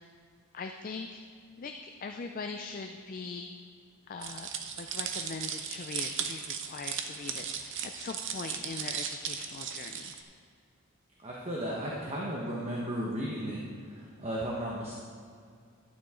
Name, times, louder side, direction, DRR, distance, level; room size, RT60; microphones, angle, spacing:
voice 1, 0.5-1.2 1.6-1.7 2.0-3.5 4.1-4.5 4.8-10.1, left 4 dB, 40° left, 5 dB, 0.4 m, -41 dB
sound 1, 4.2-10.2, right 7 dB, 55° right, 0.7 m, -37 dB
voice 2, 11.2-15.0, equal, 30° right, -4 dB, 1.1 m, -35 dB
12.0 x 9.2 x 3.8 m, 2.2 s
head